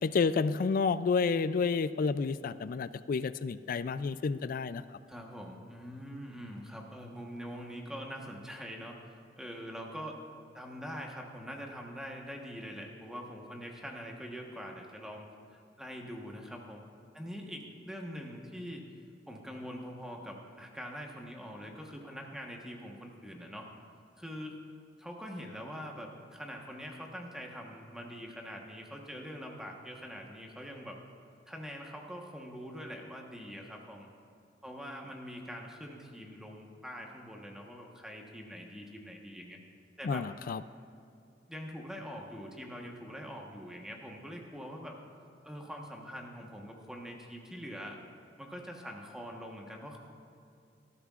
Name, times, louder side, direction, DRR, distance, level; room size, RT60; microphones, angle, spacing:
voice 1, 0.0-5.0 40.0-40.6, left 5 dB, 50° left, 14 dB, 0.3 m, -30 dB
voice 2, 5.1-10.2 10.5-16.9 17.1-18.9 19.3-23.7 24.2-24.6 25.0-31.0 31.5-34.1 34.6-39.6 40.0-40.3 41.5-45.0 45.4-48.0 48.4-50.0, equal, 5° right, 0 dB, 1.2 m, -44 dB
18.0 x 13.0 x 2.5 m, 2.5 s
head